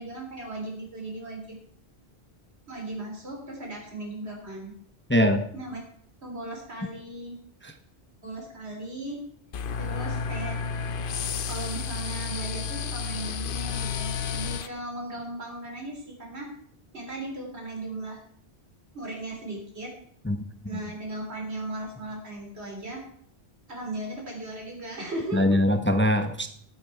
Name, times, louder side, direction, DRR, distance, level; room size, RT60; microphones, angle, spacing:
voice 1, 0.0-1.6 2.7-4.7 5.5-5.8 6.2-7.4 8.2-9.2 9.8-10.6 11.2-16.5 16.9-18.2 18.9-19.9 20.7-23.0 23.7-25.4, right 2 dB, 85° right, 1 dB, 3.6 m, -37 dB
voice 2, 5.1-5.5 7.6-7.7 20.2-20.4 20.7-20.8 25.3-26.5, left 1 dB, 10° left, 7 dB, 0.7 m, -22 dB
sound 1, 9.5-14.7, left 5 dB, 60° left, 0.8 m, -31 dB
13.0 x 8.7 x 4.6 m, 0.64 s
omnidirectional pair, 1.1 m